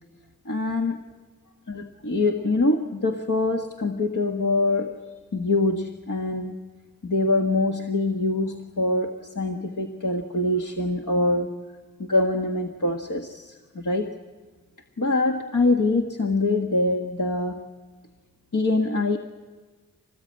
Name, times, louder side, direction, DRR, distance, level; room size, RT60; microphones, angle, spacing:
voice 1, 0.4-1.0 1.7-4.9 5.3-6.6 7.0-11.5 12.0-14.1 15.0-17.6 18.5-19.2, left 2 dB, 60° left, 2 dB, 1.7 m, -24 dB
25.5 x 19.5 x 8.8 m, 1.4 s
wide cardioid pair, 45°, 34 cm